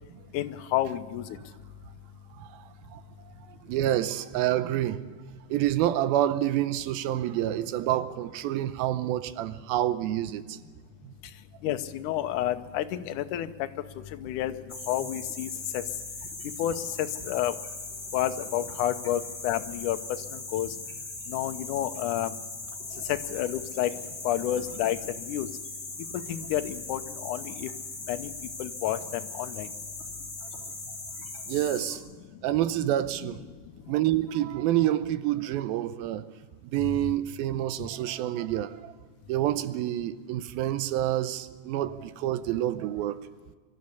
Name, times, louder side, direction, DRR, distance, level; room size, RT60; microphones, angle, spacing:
voice 1, 0.3-1.4 11.6-13.7 14.0-15.8 16.6-17.6 18.1-20.0 20.3-20.8 21.3-22.3 23.0-23.9 24.2-25.5 26.3-27.7 28.1-28.3 28.6-29.7 37.1-37.2, left 12 dB, 70° left, 2.1 m, -30 dB
voice 2, 2.4-3.0 3.7-5.1 5.5-10.6 31.5-32.0 32.4-33.4 33.9-36.2 36.7-38.9 39.3-43.2, right 13 dB, 90° right, 2.6 m, -28 dB
sound 1, 14.7-32.0, left 3 dB, 20° left, 2.4 m, -39 dB
24.5 x 13.0 x 8.4 m
omnidirectional pair, 4.2 m